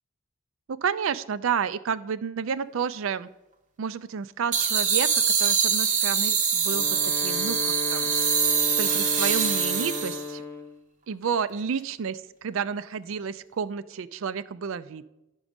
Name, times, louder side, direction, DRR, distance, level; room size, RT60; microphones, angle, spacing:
voice 1, 0.7-3.3 3.8-8.1 8.8-10.4 11.1-15.1, right 6 dB, 60° right, 16 dB, 0.4 m, -31 dB
sound 1, 4.5-10.3, right 6 dB, 35° right, 0.7 m, -24 dB
Wind instrument woodwind instrument, 6.6-10.8, left 4 dB, 10° left, 0.5 m, -35 dB
10.5 x 6.2 x 5.1 m, 0.96 s
head